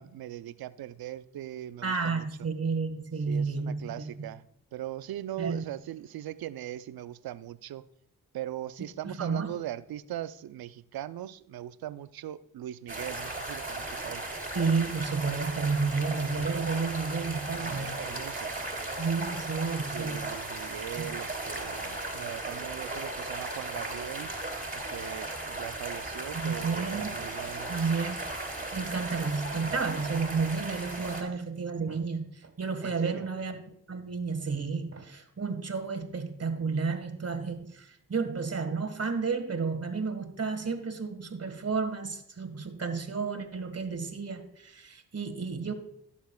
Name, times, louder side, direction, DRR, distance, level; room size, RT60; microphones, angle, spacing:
voice 1, 0.0-2.3 3.3-4.4 4.7-7.8 8.3-14.2 17.6-19.0 19.9-24.3 24.7-27.7 32.8-33.3, right 12 dB, 65° right, 0.6 m, -40 dB
voice 2, 1.8-4.1 5.4-5.6 9.0-9.5 14.5-18.0 19.0-20.3 21.0-21.1 26.3-27.1 27.7-28.2 28.7-33.6 33.9-45.7, right 4 dB, 40° right, 1.7 m, -31 dB
sound 1, 12.9-31.2, right 2 dB, 20° right, 3.2 m, -36 dB
15.5 x 7.2 x 2.3 m
supercardioid pair, 45°, 39 cm